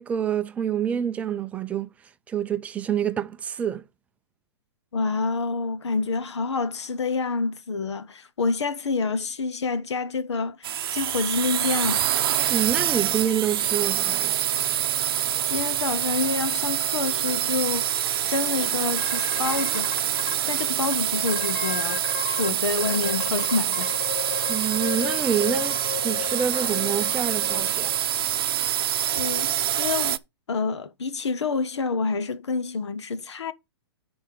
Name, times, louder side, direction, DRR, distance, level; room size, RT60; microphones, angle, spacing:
voice 1, 0.0-1.9 2.3-3.8 12.5-14.4 24.5-27.9, right 8 dB, 10° right, 0.4 m, -27 dB
voice 2, 4.9-12.1 15.5-19.9 20.5-23.9 29.1-30.2 30.5-33.5, left 4 dB, 90° left, 1.0 m, -28 dB
sound 1, 10.6-30.2, right 11 dB, 55° right, 0.6 m, -26 dB
sound 2, 19.0-20.3 20.8-20.9 21.3-22.5 22.8-28.0, left 12 dB, 55° left, 0.9 m, -34 dB
10.5 x 4.3 x 5.0 m
hypercardioid pair, 150°, 14 cm